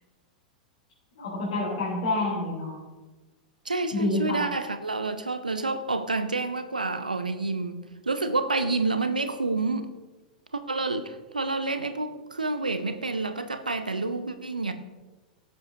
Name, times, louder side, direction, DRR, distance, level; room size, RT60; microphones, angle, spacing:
voice 1, 1.2-2.7 3.9-4.4, left 2 dB, 55° left, -7 dB, 3.6 m, -28 dB
voice 2, 3.6-9.9 10.5-14.7, right 3 dB, 80° right, 10 dB, 0.7 m, -29 dB
17.5 x 7.8 x 2.8 m, 1.2 s
figure-of-eight pair, 95°, 4 cm